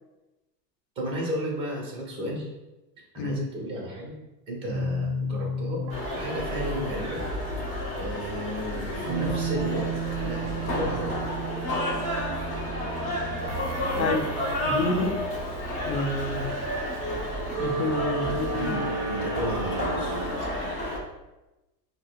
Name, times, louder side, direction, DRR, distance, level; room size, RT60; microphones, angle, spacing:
voice 1, 1.0-2.5 3.1-4.1 4.5-5.8 6.1-7.2 7.9-9.9 10.2-11.4 13.9-14.3 14.7-14.9 18.5-20.5, equal, 10° right, -2 dB, 0.7 m, -33 dB
sound 1, 4.7-20.2, right 3 dB, 50° right, 0.5 m, -34 dB
sound 2, 5.9-21.0, left 1 dB, 25° left, 0.6 m, -31 dB
sound 3, 12.1-20.2, equal, 10° left, 1.1 m, -47 dB
voice 2, 14.6-15.1 15.8-16.5 17.6-18.8, left 3 dB, 90° left, 4 dB, 0.7 m, -28 dB
5.1 x 2.1 x 2.2 m, 1.0 s
supercardioid pair, 150°, 50 cm